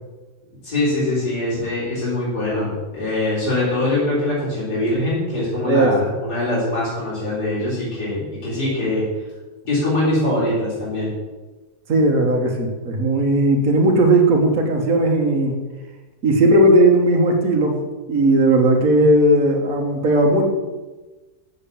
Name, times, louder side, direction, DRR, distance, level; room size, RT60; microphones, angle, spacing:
voice 1, 0.6-9.0 9.7-11.1, left 1 dB, 75° left, -8 dB, 4.5 m, -22 dB
voice 2, 11.9-15.6 16.2-17.8 18.1-20.4, right 1 dB, 60° right, 0 dB, 1.9 m, -16 dB
8.2 x 6.9 x 7.0 m, 1.2 s
omnidirectional pair, 1.7 m